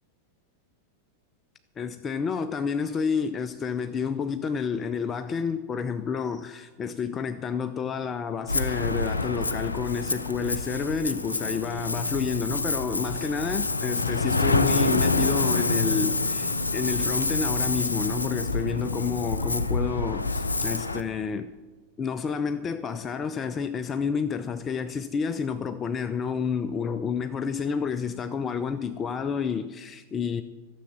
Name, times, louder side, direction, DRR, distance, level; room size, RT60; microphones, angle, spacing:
voice 1, 1.8-21.5 22.0-30.4, left 6 dB, 25° left, 0.4 m, -30 dB
Ocean, 8.5-21.0, left 3 dB, 80° left, 0.5 m, -27 dB
13.0 x 7.1 x 7.3 m
figure-of-eight pair, 90°, 0 cm